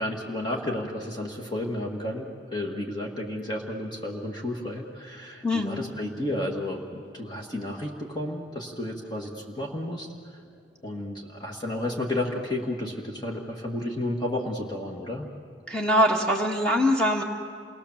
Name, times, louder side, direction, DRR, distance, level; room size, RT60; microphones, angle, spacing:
voice 1, 0.0-10.1 10.8-15.3, left 1 dB, 20° left, 0 dB, 1.7 m, -32 dB
voice 2, 5.4-5.8 15.7-17.2, left 1 dB, 5° left, 0 dB, 1.6 m, -23 dB
28.0 x 20.5 x 7.2 m, 2.1 s
head